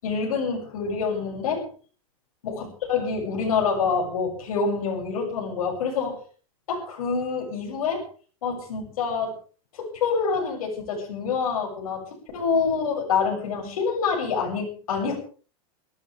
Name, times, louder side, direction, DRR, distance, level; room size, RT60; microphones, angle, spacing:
voice 1, 0.0-1.7 2.4-6.2 6.7-8.1 8.4-9.3 9.7-12.0 12.3-15.2, left 5 dB, 85° left, -1 dB, 7.1 m, -26 dB
24.5 x 13.5 x 3.5 m, 0.39 s
supercardioid pair, 150°, 18 cm